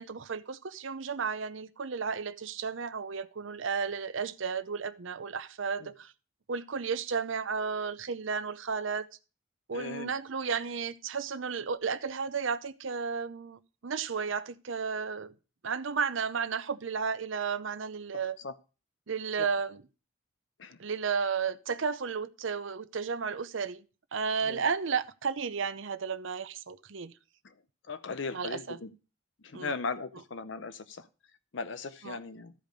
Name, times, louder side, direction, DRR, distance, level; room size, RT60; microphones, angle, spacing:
voice 1, 0.0-6.1 6.5-9.1 9.7-15.3 15.6-18.4 19.1-19.8 20.8-23.8 24.1-27.1 28.3-28.8 29.5-29.7 32.0-32.2, right 5 dB, 65° right, 0.7 m, -33 dB
voice 2, 9.7-10.1 18.4-18.5 19.4-19.5 20.6-20.8 24.5-24.6 27.4-27.5 27.9-28.9 29.4-31.1 31.5-32.5, left 4 dB, 60° left, 0.6 m, -38 dB
13.5 x 5.0 x 5.1 m
head